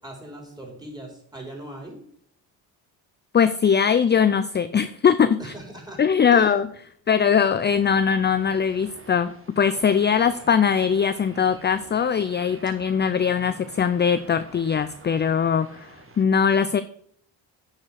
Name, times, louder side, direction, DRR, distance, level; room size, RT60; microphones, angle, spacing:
voice 1, 0.0-2.0 5.4-6.0 6.3-6.5 13.3-13.7, right 1 dB, 10° right, 0 dB, 4.3 m, -40 dB
voice 2, 3.3-5.5 6.0-6.7 7.1-16.8, left 7 dB, 25° left, 12 dB, 0.4 m, -21 dB
sound 1, 7.4-16.3, right 3 dB, 30° right, 1.5 m, -48 dB
9.9 x 4.9 x 6.3 m, 0.64 s
cardioid pair, 70°, 46 cm